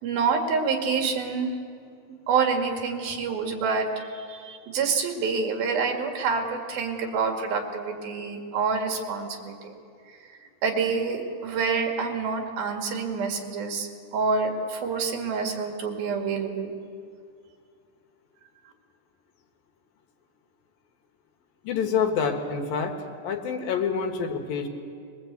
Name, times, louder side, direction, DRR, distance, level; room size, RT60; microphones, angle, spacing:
voice 1, 0.0-1.5 2.3-9.7 10.1-10.2 10.6-16.8, right 5 dB, 75° right, 3 dB, 3.9 m, -27 dB
voice 2, 21.6-23.0 23.2-24.7, left 6 dB, 70° left, 4 dB, 3.3 m, -27 dB
22.5 x 21.5 x 8.2 m, 2.3 s
omnidirectional pair, 4.3 m